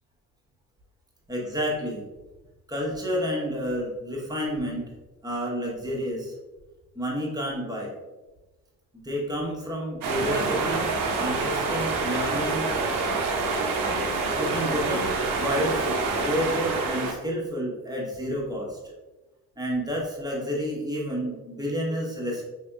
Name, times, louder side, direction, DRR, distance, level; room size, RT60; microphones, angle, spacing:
voice 1, 1.3-2.0 2.7-4.8 5.2-6.3 6.9-7.9 8.9-12.7 14.0-14.1 14.3-18.8 19.6-22.5, equal, 10° right, -4 dB, 1.3 m, -30 dB
sound 1, 10.0-17.1, right 3 dB, 40° right, 0.9 m, -27 dB
5.1 x 3.6 x 2.3 m, 1.1 s
figure-of-eight pair, 50°, 49 cm